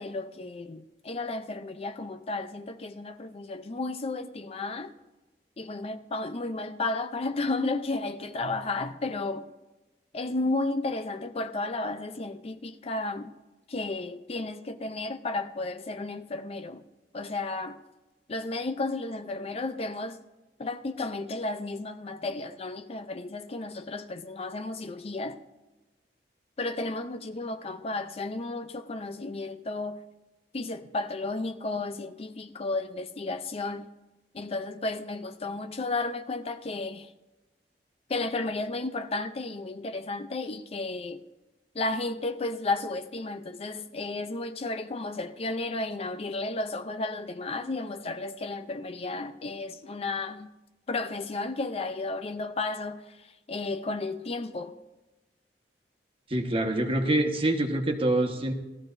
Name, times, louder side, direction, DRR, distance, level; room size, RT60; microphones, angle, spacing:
voice 1, 0.0-4.9 5.6-9.5 10.1-13.3 13.7-16.8 17.1-17.8 18.3-20.2 20.6-25.4 26.6-30.0 30.5-33.9 34.3-37.1 38.1-41.2 41.7-50.5 50.9-54.7, left 2 dB, 35° left, 0.5 m, -33 dB
voice 2, 56.3-58.5, right 1 dB, 30° right, 1.3 m, -25 dB
18.5 x 14.0 x 2.6 m
head